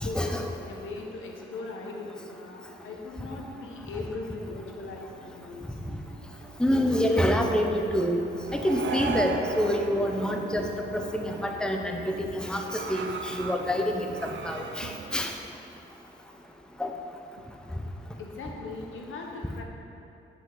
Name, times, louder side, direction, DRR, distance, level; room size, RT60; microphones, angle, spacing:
voice 1, 0.0-0.5 6.6-8.2 8.5-10.6 10.9-14.1 14.4-15.3 16.8-16.9, equal, 5° left, 3 dB, 0.7 m, -27 dB
voice 2, 0.6-5.8 18.2-19.6, left 3 dB, 90° left, 1 dB, 1.0 m, -39 dB
sound 1, 4.9-15.3, right 5 dB, 65° right, 0.6 m, -39 dB
9.2 x 5.3 x 3.9 m, 2.9 s
cardioid pair, 75°, 20 cm